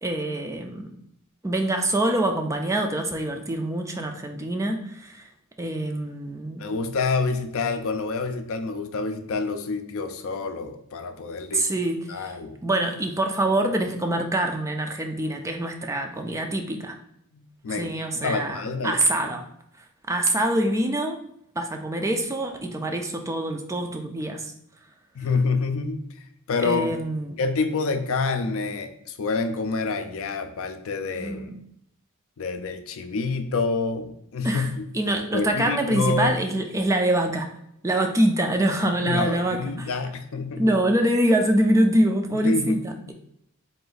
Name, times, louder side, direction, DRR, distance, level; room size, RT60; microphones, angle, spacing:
voice 1, 0.0-0.9 1.4-5.3 5.6-6.6 11.5-12.3 12.6-16.9 17.7-19.5 20.1-21.2 21.6-24.5 26.6-27.3 31.2-31.6 34.4-34.7 34.9-37.5 37.8-39.9 40.6-43.1, right 1 dB, 15° right, 4 dB, 0.3 m, -25 dB
voice 2, 6.6-11.7 12.1-12.6 17.3-17.9 18.1-19.0 25.1-26.0 26.5-27.0 27.4-31.5 32.4-36.3 39.0-40.7 42.4-42.9, left 4 dB, 65° left, 7 dB, 0.4 m, -27 dB
3.8 x 2.5 x 3.8 m, 0.74 s
head